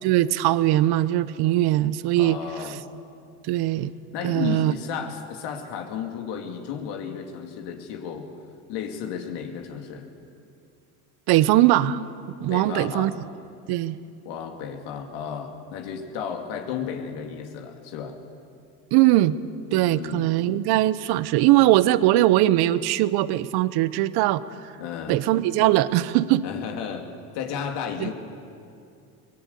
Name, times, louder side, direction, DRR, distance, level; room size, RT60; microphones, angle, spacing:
voice 1, 0.0-2.4 3.5-3.9 4.2-4.7 11.3-12.0 12.4-13.1 13.7-14.0 18.9-19.4 19.7-24.4 25.1-26.4 28.0-28.1, right 15 dB, 65° right, 16 dB, 0.9 m, -20 dB
voice 2, 2.2-2.8 4.1-8.3 8.7-10.1 12.5-13.1 14.2-18.2 19.9-20.3 24.8-25.2 26.4-27.1 27.3-28.1, left 7 dB, 70° left, 3 dB, 2.5 m, -33 dB
24.0 x 19.0 x 8.2 m, 2.5 s
supercardioid pair, 110°, 42 cm